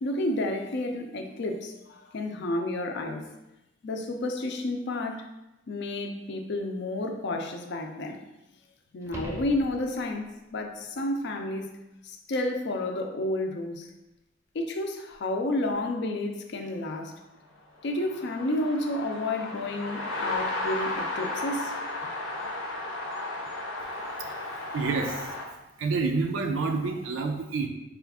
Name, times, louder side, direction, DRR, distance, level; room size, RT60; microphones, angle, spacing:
voice 1, 0.0-3.2 3.8-5.2 5.7-8.2 8.9-11.7 12.0-13.9 14.5-17.1 17.8-21.7, left 1 dB, 60° left, 4 dB, 0.5 m, -31 dB
sound 1, 9.0-10.3 15.1-15.2, equal, 15° right, 0.5 m, -39 dB
sound 2, 17.8-25.4, left 2 dB, 90° left, 0.8 m, -34 dB
voice 2, 24.3-25.4 25.8-27.7, right 4 dB, 85° right, 3 dB, 0.4 m, -29 dB
4.3 x 2.4 x 3.5 m, 0.96 s
head